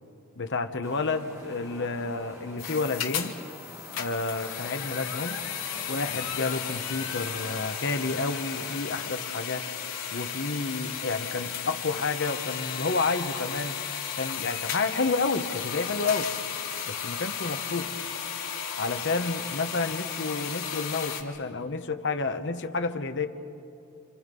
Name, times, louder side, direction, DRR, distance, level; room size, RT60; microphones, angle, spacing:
voice 1, 0.4-3.4 4.0-5.4 5.9-9.7 10.1-13.8 14.2-16.3 16.8-17.9 18.8-23.3, left 3 dB, 55° left, 7 dB, 1.2 m, -30 dB
sound 1, 0.8-9.1, equal, 15° right, 2.7 m, -47 dB
sound 2, 2.6-21.2, left 8 dB, 85° left, 2.7 m, -34 dB
29.5 x 27.0 x 5.4 m, 2.6 s
head